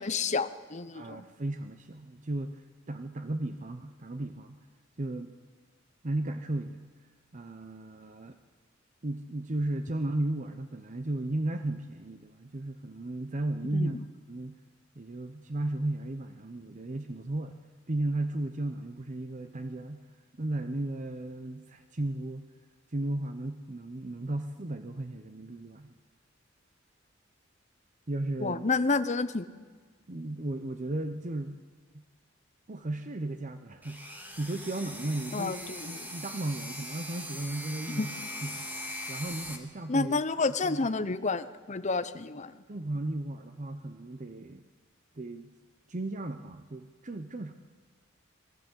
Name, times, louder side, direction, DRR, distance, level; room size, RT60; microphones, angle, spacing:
voice 1, 0.0-1.3 13.7-14.0 28.4-29.4 35.3-36.1 37.9-38.1 39.9-42.6, left 3 dB, 35° left, 12 dB, 0.8 m, -30 dB
voice 2, 0.9-4.6 5.0-5.3 6.0-6.9 7.3-8.4 9.0-14.0 14.3-14.6 14.9-20.1 20.4-22.5 22.9-25.9 28.1-28.6 30.1-31.7 31.9-32.0 32.7-38.1 38.4-38.7 39.1-40.1 40.6-40.9 42.7-44.6 45.2-45.5 45.9-47.5, right 2 dB, 40° right, 8 dB, 0.8 m, -35 dB
sound 1, 33.8-39.6, left 1 dB, 10° right, 2.1 m, -41 dB
22.5 x 14.5 x 8.2 m, 1.5 s
head